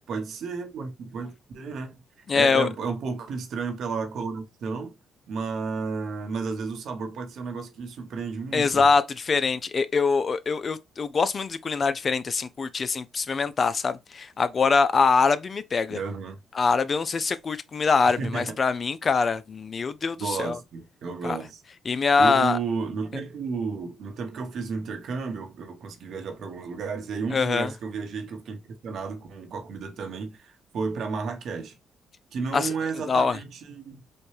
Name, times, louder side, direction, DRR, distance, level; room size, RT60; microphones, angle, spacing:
voice 1, 0.1-2.0 2.3-4.9 5.3-8.9 15.9-16.4 18.1-18.6 20.1-21.6 22.2-31.8 32.3-34.0, right 5 dB, 65° right, 1.0 m, -32 dB
voice 2, 2.3-2.7 8.5-16.0 16.5-20.6 21.2-21.4 21.9-22.6 27.3-27.7 32.5-32.7 33.1-33.4, left 4 dB, 40° left, 0.4 m, -23 dB
4.2 x 2.2 x 3.2 m
cardioid pair, 90°, 0 cm